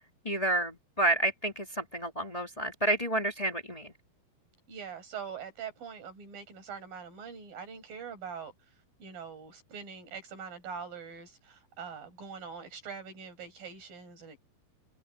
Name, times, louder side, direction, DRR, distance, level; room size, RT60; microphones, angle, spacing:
voice 1, 0.2-3.9, right 1 dB, 20° left, 0.9 m, -30 dB
voice 2, 4.7-8.5 9.0-14.4, right 6 dB, 60° right, 8.8 m, -43 dB
omnidirectional pair, 4.6 m